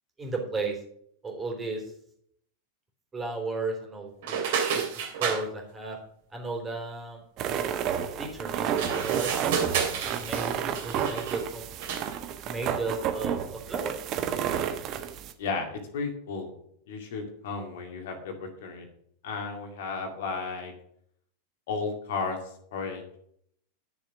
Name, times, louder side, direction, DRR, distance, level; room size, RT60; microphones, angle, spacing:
voice 1, 0.2-0.8 1.2-1.9 3.1-4.4 4.7-6.0 6.3-7.2 8.2-9.3 9.8-11.7 12.4-14.0, right 3 dB, 15° right, 1 dB, 3.5 m, -34 dB
sound 1, 4.2-5.4 8.7-11.5 11.8-12.2, right 7 dB, 50° right, 2.8 m, -30 dB
sound 2, 7.4-15.3, right 9 dB, 35° right, 1.2 m, -31 dB
voice 2, 15.4-16.5 16.9-18.9 19.2-20.7 21.7-23.0, left 4 dB, 55° left, 4 dB, 2.2 m, -34 dB
11.5 x 7.0 x 6.2 m, 0.68 s
figure-of-eight pair, 90°, 0 cm